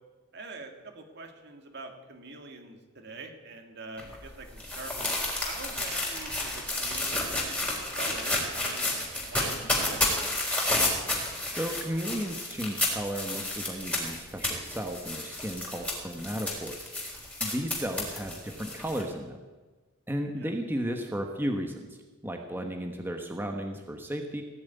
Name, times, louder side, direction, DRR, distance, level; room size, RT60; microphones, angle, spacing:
voice 1, 0.3-8.9 9.2-10.1 20.3-20.5, right 3 dB, 60° right, 4 dB, 2.3 m, -44 dB
sound 1, 4.0-19.0, left 2 dB, 5° left, 4.0 m, -31 dB
voice 2, 11.1-16.9 17.4-19.4 20.1-22.0 22.2-24.4, equal, 10° right, 3 dB, 1.1 m, -34 dB
17.5 x 7.3 x 9.5 m, 1.3 s
head